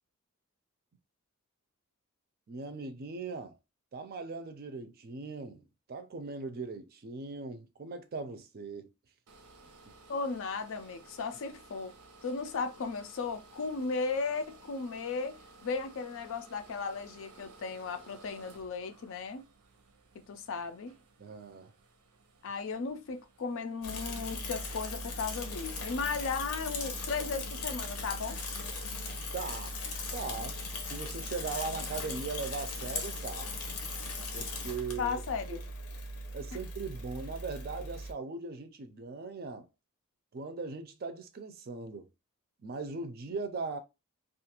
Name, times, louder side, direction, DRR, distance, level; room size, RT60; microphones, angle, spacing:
voice 1, 2.5-3.6 3.9-8.9 21.2-21.7 29.3-29.7 30.1-33.5 34.3-35.2 35.5-35.6 36.3-39.7 40.3-42.1 42.6-43.8, right 4 dB, 45° right, 0.4 m, -39 dB
sound 1, 9.3-25.3, right 3 dB, 90° right, 0.7 m, -57 dB
voice 2, 10.1-11.9 12.2-19.5 20.3-20.9 22.4-28.4 35.0-35.6, left 4 dB, 60° left, 0.4 m, -36 dB
Bicycle / Mechanisms, 23.8-38.1, left 2 dB, 90° left, 0.7 m, -38 dB
2.5 x 2.4 x 2.8 m
head